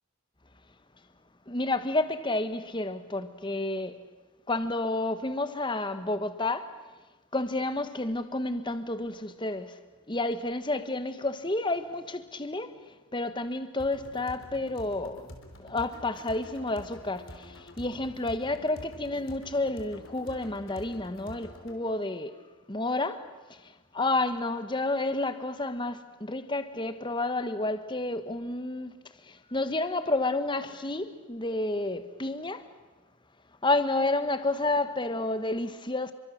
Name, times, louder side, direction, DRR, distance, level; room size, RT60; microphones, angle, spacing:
voice 1, 1.5-4.0 4.5-6.7 7.3-9.8 10.1-12.7 13.1-15.3 15.6-22.3 22.7-28.9 29.2-32.7 33.6-36.1, left 2 dB, 20° left, 1.2 m, -30 dB
sound 1, 13.8-21.8, left 1 dB, 65° left, 3.3 m, -48 dB
30.0 x 23.5 x 6.5 m
head